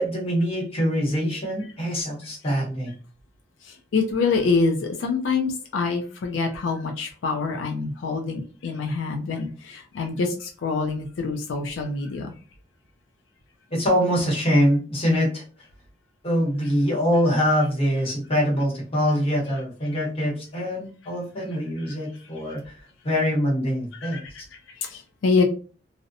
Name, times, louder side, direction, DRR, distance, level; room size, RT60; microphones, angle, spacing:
voice 1, 0.0-3.0 13.7-15.4 16.2-22.8 23.0-24.2, equal, 30° left, -3 dB, 1.0 m, -24 dB
voice 2, 3.9-12.3 15.0-15.2 24.0-24.2 24.8-25.4, left 4 dB, 85° left, 3 dB, 0.4 m, -25 dB
2.7 x 2.0 x 2.6 m, 0.38 s
head